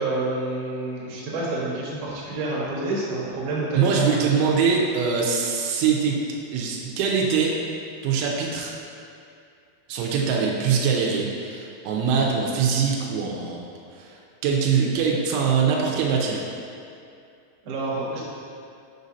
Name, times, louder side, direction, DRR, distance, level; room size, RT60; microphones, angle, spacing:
voice 1, 0.0-4.3 17.6-18.2, right 2 dB, 70° right, -6 dB, 2.5 m, -28 dB
voice 2, 3.7-6.2 6.5-7.5 8.0-8.7 9.9-13.6 13.9-14.2 14.4-16.4, right 6 dB, 85° right, -2 dB, 3.1 m, -23 dB
7.1 x 5.1 x 2.7 m, 2.5 s
omnidirectional pair, 5.3 m